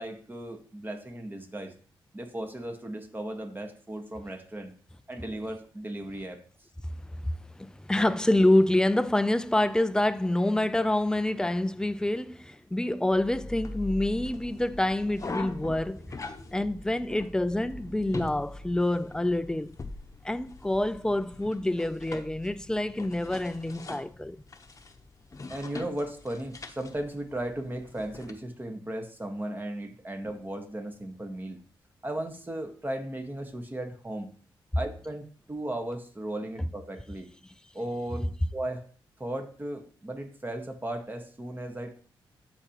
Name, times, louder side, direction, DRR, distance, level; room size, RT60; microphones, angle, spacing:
voice 1, 0.0-1.7 2.1-4.7 5.1-6.4 25.5-31.6 32.0-34.3 34.7-37.3 37.7-38.8 39.2-42.0, right 1 dB, 20° right, 1.6 m, -36 dB
voice 2, 7.6-16.0 16.5-19.7 20.2-24.4, left 1 dB, 10° left, 0.5 m, -27 dB
sound 1, 13.1-28.3, left 2 dB, 35° left, 1.0 m, -42 dB
12.5 x 5.1 x 3.0 m
cardioid pair, 70°, 9 cm